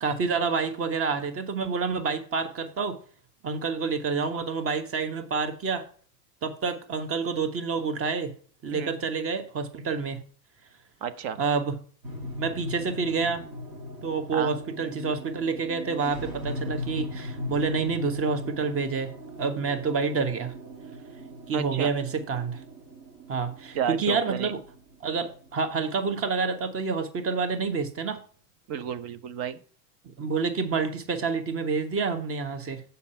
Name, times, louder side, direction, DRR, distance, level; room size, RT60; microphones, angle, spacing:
voice 1, 0.0-3.0 3.4-5.8 6.4-8.3 8.6-10.2 11.4-11.7 12.4-13.4 14.0-19.1 19.4-20.5 21.5-22.6 23.3-24.6 25.0-28.2 30.2-32.8, right 5 dB, 30° right, 8 dB, 1.3 m, -28 dB
voice 2, 11.0-11.4 14.3-14.5 21.5-21.9 23.7-24.5 28.7-29.6, right 8 dB, 50° right, 12 dB, 1.0 m, -32 dB
sound 1, 12.0-26.7, left 1 dB, 70° right, 3.8 m, -39 dB
7.2 x 5.6 x 5.6 m, 0.44 s
hypercardioid pair, 95°, 47 cm